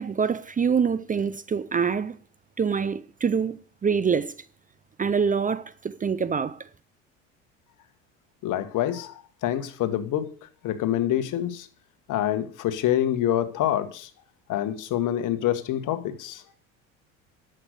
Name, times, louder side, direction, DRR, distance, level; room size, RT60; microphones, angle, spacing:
voice 1, 0.0-2.2 2.6-4.3 5.0-6.6, right 6 dB, 20° right, 0.7 m, -25 dB
voice 2, 8.4-10.3 10.6-11.7 12.1-14.1 14.5-16.4, left 12 dB, 55° left, 1.7 m, -26 dB
11.0 x 7.9 x 6.7 m
hypercardioid pair, 75°, 37 cm